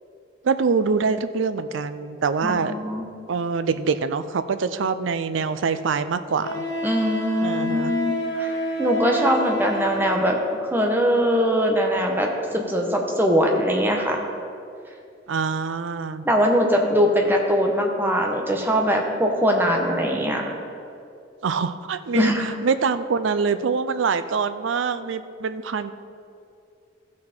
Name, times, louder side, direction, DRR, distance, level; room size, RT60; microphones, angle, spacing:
voice 1, 0.4-2.7 3.3-6.6 7.4-7.9 15.3-16.2 21.4-25.9, right 5 dB, 75° right, 11 dB, 0.4 m, -24 dB
voice 2, 2.4-3.1 6.8-14.2 16.2-20.4 22.1-22.5, equal, 10° right, 1 dB, 1.1 m, -22 dB
Wind instrument woodwind instrument, 5.1-5.2 6.4-10.5, equal, 65° left, 1.4 m, -29 dB
14.5 x 6.3 x 4.3 m, 2.6 s
head